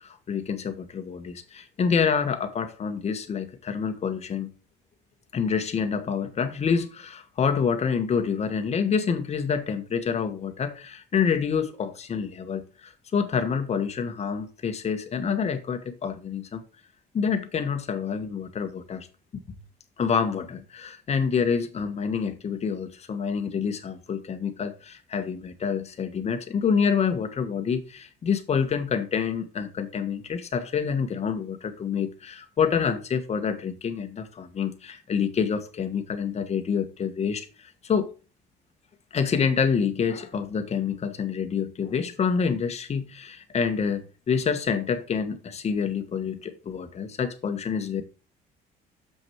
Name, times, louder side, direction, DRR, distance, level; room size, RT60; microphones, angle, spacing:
voice 1, 0.0-4.5 5.3-16.6 17.1-19.1 19.5-19.6 20.0-38.1 39.1-48.0, left 6 dB, 40° left, 1.4 m, -27 dB
7.1 x 6.1 x 4.5 m
cardioid pair, 110°, 17 cm